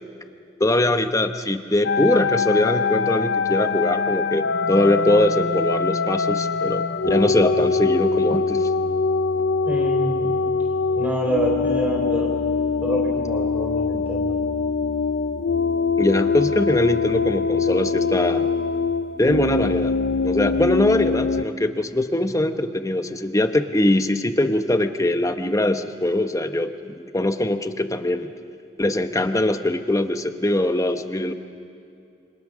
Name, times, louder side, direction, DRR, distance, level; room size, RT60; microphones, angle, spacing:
voice 1, 0.6-8.7 16.0-18.5 19.2-20.0 20.2-28.3 28.8-31.3, left 1 dB, 20° left, 8 dB, 1.0 m, -22 dB
sound 1, 1.8-21.5, left 4 dB, 85° left, 0.6 m, -23 dB
voice 2, 9.6-10.3 11.0-12.3 12.8-14.4, equal, 10° right, 0 dB, 4.0 m, -26 dB
28.0 x 25.5 x 6.4 m, 2.5 s
head